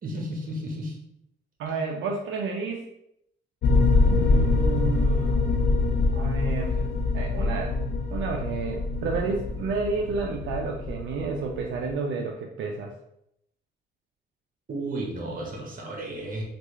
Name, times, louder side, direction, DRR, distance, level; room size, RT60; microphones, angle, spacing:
voice 1, 0.0-1.0 14.7-16.4, right 1 dB, 45° right, 0 dB, 1.0 m, -33 dB
voice 2, 1.6-2.9 3.9-5.4 6.1-6.9 7.1-7.8 8.1-12.9, right 4 dB, 75° right, 0 dB, 0.5 m, -31 dB
sound 1, 3.6-11.9, left 3 dB, 60° left, 0.6 m, -24 dB
3.3 x 2.4 x 3.1 m, 0.79 s
cardioid pair, 90°, 20 cm